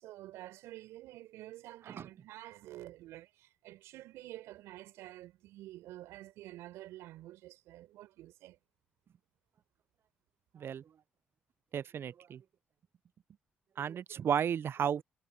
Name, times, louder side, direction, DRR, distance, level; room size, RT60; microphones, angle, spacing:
voice 1, 0.0-8.6, right 15 dB, 70° right, 4.1 m, -49 dB
voice 2, 11.7-12.4 13.8-15.0, right 8 dB, 55° right, 0.7 m, -33 dB
hypercardioid pair, 40°, 5 cm